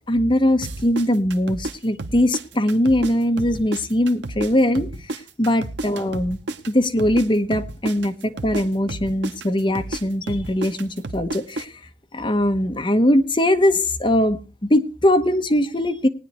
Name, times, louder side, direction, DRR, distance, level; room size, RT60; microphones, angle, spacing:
voice 1, 0.1-4.9 5.4-6.4 6.7-11.7 12.1-16.1, left 1 dB, 30° left, 6 dB, 1.0 m, -21 dB
sound 1, 0.6-3.1 3.4-7.3 7.5-11.6, right 2 dB, 85° right, 0.9 m, -31 dB
19.5 x 9.4 x 3.1 m, 0.32 s
head